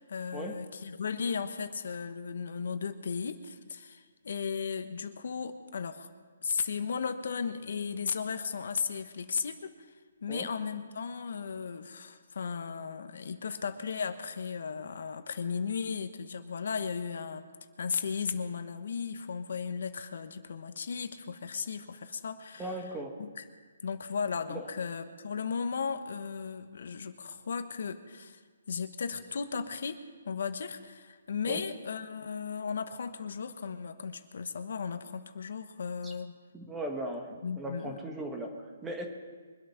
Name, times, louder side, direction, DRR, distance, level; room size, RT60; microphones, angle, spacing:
voice 1, 0.1-6.1 6.4-9.7 10.2-17.4 17.8-22.8 23.2-23.4 23.8-28.4 28.7-30.0 30.3-36.3 37.4-38.0, left 6 dB, 60° left, 9 dB, 1.1 m, -35 dB
voice 2, 22.6-23.1 24.5-24.6 31.5-31.6 36.0-36.1 36.5-39.1, right 1 dB, 10° right, 3 dB, 1.3 m, -38 dB
23.5 x 8.7 x 5.8 m, 1.5 s
hypercardioid pair, 170°, 0 cm